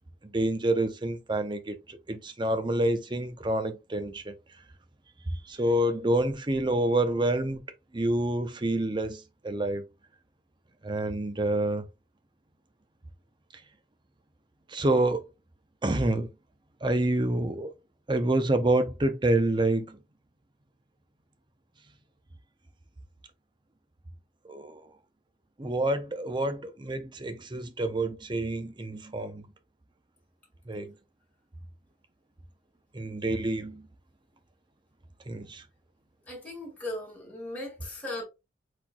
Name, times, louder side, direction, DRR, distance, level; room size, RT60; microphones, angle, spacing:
voice 1, 0.2-4.4 5.4-7.6 7.9-9.9 10.8-11.8 14.7-15.2 15.8-16.3 16.8-17.7 18.1-20.0 24.5-24.9 25.6-29.5 30.7-30.9 32.9-33.9 35.3-35.6, right 1 dB, 25° right, 0.6 m, -28 dB
voice 2, 36.3-38.3, left 1 dB, 10° left, 2.0 m, -37 dB
4.4 x 4.2 x 2.3 m
head